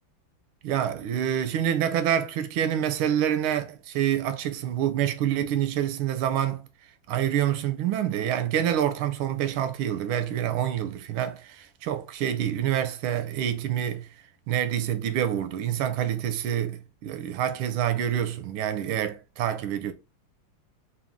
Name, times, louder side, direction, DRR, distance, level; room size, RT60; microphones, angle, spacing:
voice 1, 0.6-6.7 7.1-14.1 14.5-19.9, right 10 dB, 80° right, 1.4 m, -27 dB
4.0 x 2.7 x 3.5 m
omnidirectional pair, 2.4 m